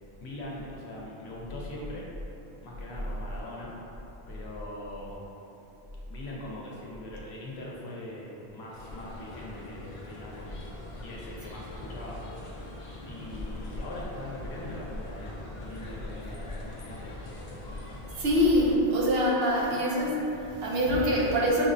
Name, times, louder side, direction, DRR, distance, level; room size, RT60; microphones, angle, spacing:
voice 1, 0.2-2.1 2.6-3.7 4.3-5.4 6.1-10.5 11.0-12.2 13.0-17.2, left 1 dB, 75° left, -4 dB, 0.9 m, -41 dB
sound 1, 8.7-18.7, left 1 dB, 45° left, 0.4 m, -41 dB
voice 2, 18.2-21.7, equal, 70° right, -4 dB, 0.8 m, -24 dB
5.4 x 2.0 x 2.6 m, 3.0 s
omnidirectional pair, 1.1 m